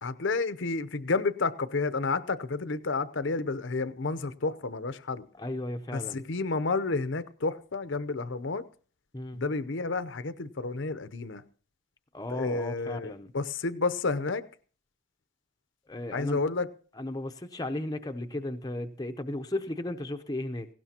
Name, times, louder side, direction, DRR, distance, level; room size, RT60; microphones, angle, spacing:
voice 1, 0.0-5.2 5.9-8.6 9.3-11.4 12.3-14.4 16.1-16.7, left 3 dB, 55° left, 13 dB, 0.7 m, -30 dB
voice 2, 5.4-6.2 9.1-9.4 12.1-13.3 15.9-16.4 17.0-20.7, left 1 dB, 15° left, 6 dB, 0.6 m, -35 dB
18.0 x 16.5 x 2.9 m, 0.42 s
head